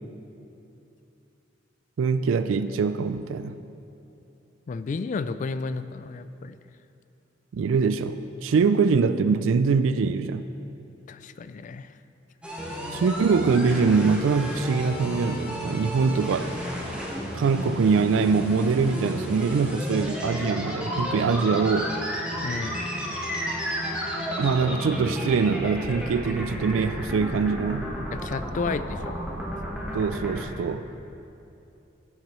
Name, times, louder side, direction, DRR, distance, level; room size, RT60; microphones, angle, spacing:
voice 1, 2.0-3.6 7.5-10.5 12.9-16.5 17.3-21.9 24.4-27.9 29.9-30.9, right 5 dB, 85° right, 12 dB, 0.3 m, -23 dB
voice 2, 4.7-6.6 11.1-11.9 22.4-22.9 28.1-29.1, left 4 dB, 40° left, 12 dB, 0.3 m, -32 dB
sound 1, 12.4-30.5, equal, 5° right, 1.3 m, -32 dB
15.5 x 7.4 x 3.1 m, 2.8 s
head